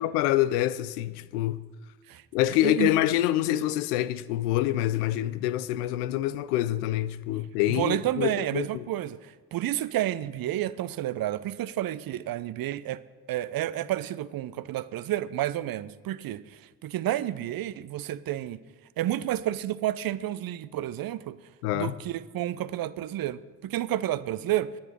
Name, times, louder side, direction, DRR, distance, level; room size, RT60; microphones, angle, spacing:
voice 1, 0.0-1.6 2.3-8.9 21.6-21.9, left 14 dB, 75° left, 0.6 m, -26 dB
voice 2, 7.8-13.0 13.3-18.6 19.0-21.4 21.7-24.7, right 13 dB, 50° right, 0.7 m, -30 dB
18.0 x 9.9 x 4.5 m
figure-of-eight pair, 45°, 47 cm